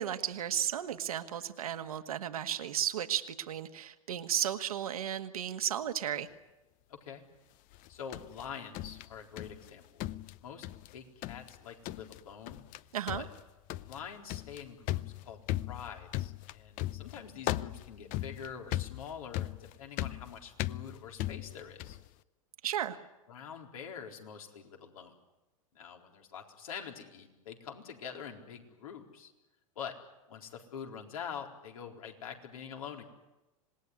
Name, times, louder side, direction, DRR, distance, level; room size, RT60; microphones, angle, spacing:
voice 1, 0.0-6.3 12.9-13.3 22.6-23.0, right 10 dB, 80° right, 8 dB, 1.8 m, -34 dB
voice 2, 6.9-7.2 7.9-10.0 10.4-10.6 10.9-12.6 13.1-13.3 13.8-22.0 23.3-25.1 25.7-29.3 29.8-29.9 30.3-33.0, left 7 dB, 80° left, 2 dB, 4.1 m, -45 dB
sound 1, 7.7-9.7 10.0-10.9 11.2-11.6 11.8-12.2 12.5-12.8 13.1-22.1, left 15 dB, 45° left, 0.8 m, -38 dB
26.5 x 20.0 x 9.6 m, 1.0 s
hypercardioid pair, 100°, 18 cm